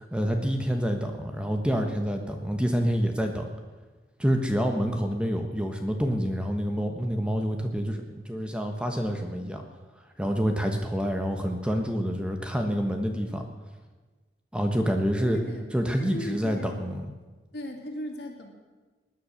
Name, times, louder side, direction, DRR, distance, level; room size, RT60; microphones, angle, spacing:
voice 1, 0.0-3.5 4.2-9.6 10.2-13.4 14.5-15.4 15.7-17.1, equal, 5° right, 4 dB, 1.1 m, -27 dB
voice 2, 15.2-15.6 16.0-16.8 17.5-18.5, left 1 dB, 70° left, 2 dB, 2.6 m, -37 dB
18.5 x 10.0 x 6.5 m, 1.3 s
head